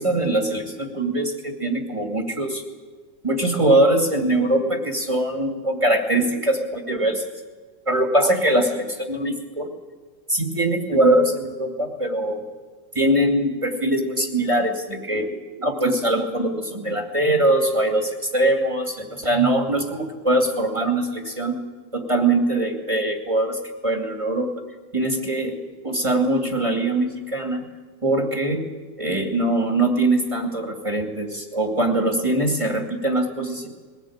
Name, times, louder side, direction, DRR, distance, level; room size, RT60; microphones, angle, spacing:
voice 1, 0.0-2.6 3.2-7.2 7.9-9.7 10.3-12.4 12.9-21.6 21.9-24.5 24.9-25.5 25.8-27.6 28.0-28.7 29.0-33.7, right 1 dB, 10° right, 3 dB, 1.9 m, -22 dB
21.5 x 16.5 x 8.7 m, 1.4 s
omnidirectional pair, 3.3 m